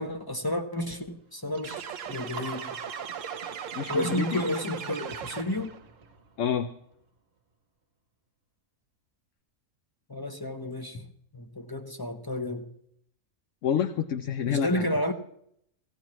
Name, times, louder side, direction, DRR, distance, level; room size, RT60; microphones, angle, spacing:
voice 1, 0.0-2.8 3.9-5.8 10.1-11.1 11.3-12.7 14.5-15.1, left 1 dB, 20° left, 0.7 m, -31 dB
sound 1, 1.5-7.1, right 3 dB, 50° right, 1.2 m, -46 dB
sound 2, 1.6-5.8, right 8 dB, 70° right, 1.1 m, -38 dB
voice 2, 3.8-4.4 6.4-6.7 13.6-14.9, left 8 dB, 70° left, 1.0 m, -28 dB
17.5 x 16.5 x 3.1 m
omnidirectional pair, 1.4 m